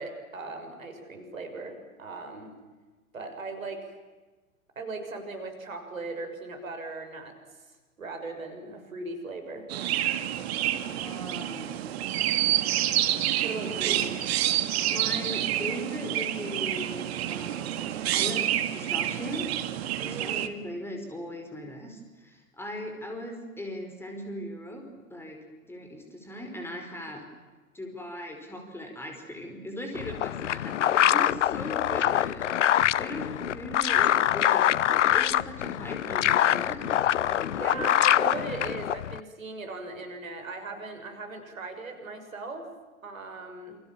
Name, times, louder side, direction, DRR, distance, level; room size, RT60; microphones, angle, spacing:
voice 1, 0.0-2.5 3.1-3.9 4.7-7.3 8.0-9.7 13.4-13.9 20.0-20.4 37.6-42.7 43.0-43.8, right 3 dB, 70° right, 6 dB, 6.6 m, -38 dB
Chirp tweet, 9.7-20.5, right 12 dB, 45° right, 2.1 m, -28 dB
voice 2, 10.7-11.7 13.5-14.2 14.9-19.5 20.0-27.2 27.7-32.6 33.0-36.8 37.1-37.9, left 1 dB, 5° left, 4 dB, 5.1 m, -39 dB
sound 1, 29.9-39.2, left 11 dB, 60° left, 0.8 m, -24 dB
29.0 x 27.5 x 7.5 m, 1.3 s
figure-of-eight pair, 105°, 42 cm